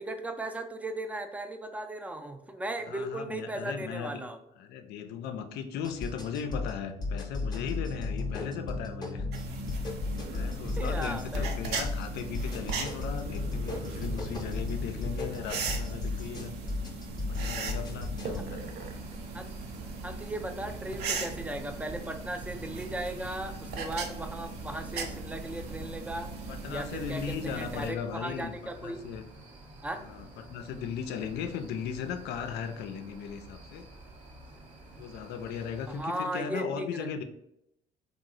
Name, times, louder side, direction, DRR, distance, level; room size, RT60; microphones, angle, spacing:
voice 1, 0.0-4.4 10.8-11.5 18.3-18.4 19.3-19.5 20.0-26.3 26.7-29.0 29.8-30.1 35.9-37.1, right 1 dB, 10° right, 6 dB, 0.3 m, -37 dB
voice 2, 2.9-4.1 4.6-9.3 10.3-16.5 17.2-18.6 26.5-29.2 30.0-33.9 35.0-37.2, left 7 dB, 80° left, 7 dB, 0.4 m, -37 dB
sound 1, 5.8-18.4, left 3 dB, 25° left, 0.6 m, -35 dB
sound 2, 9.3-27.9, right 4 dB, 75° right, 0.6 m, -38 dB
sound 3, 18.6-36.0, right 1 dB, 45° right, 0.8 m, -51 dB
3.0 x 2.1 x 3.7 m, 0.78 s
cardioid pair, 110°, 17 cm